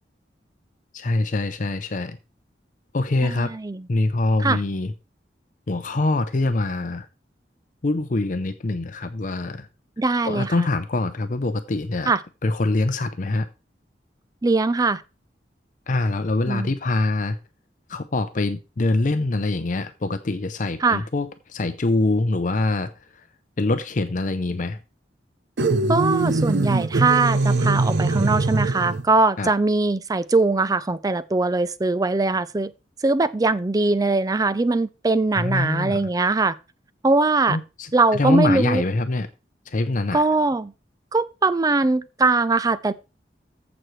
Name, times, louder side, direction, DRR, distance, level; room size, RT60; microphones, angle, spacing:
voice 1, 0.9-2.2 2.9-3.5 3.9-4.9 5.7-7.1 7.8-9.7 10.2-12.1 12.4-13.5 15.9-17.4 17.9-22.9 23.6-24.8 29.4-29.5 35.3-36.0 37.5-39.3 39.7-40.2, left 2 dB, 45° left, 0.6 m, -24 dB
voice 2, 3.2-3.9 4.4-4.6 10.0-10.7 12.1-12.2 14.4-15.0 16.5-16.7 20.8-21.0 25.9-32.7 33.0-36.6 37.0-37.6 37.9-38.8 40.1-40.7 41.1-42.9, right 3 dB, 20° right, 0.4 m, -21 dB
sound 1, 25.6-29.1, right 2 dB, 70° right, 0.6 m, -22 dB
14.5 x 6.1 x 3.2 m
head